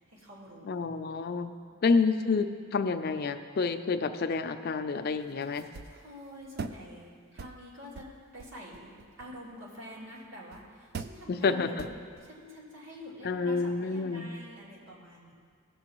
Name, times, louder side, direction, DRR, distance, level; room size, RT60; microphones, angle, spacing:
voice 1, 0.1-0.8 1.7-2.0 5.9-15.3, left 1 dB, 75° right, -5 dB, 2.5 m, -47 dB
voice 2, 0.6-1.5 1.8-5.7 11.3-11.8 13.2-14.3, left 4 dB, 50° left, 8 dB, 0.4 m, -29 dB
sound 1, 5.1-6.9 7.4-7.6 7.9-9.5 10.2-10.3 10.5-10.6 10.9-11.2 11.8-12.3, right 4 dB, 50° right, 0.4 m, -42 dB
16.5 x 6.8 x 3.0 m, 2.1 s
head